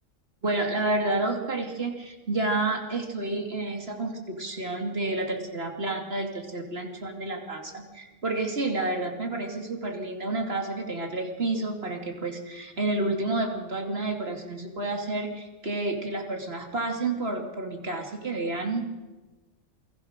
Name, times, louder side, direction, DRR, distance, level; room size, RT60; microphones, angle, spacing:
voice 1, 0.4-18.9, right 2 dB, 50° right, 3 dB, 2.9 m, -30 dB
28.0 x 20.5 x 6.6 m, 1.2 s
omnidirectional pair, 1.3 m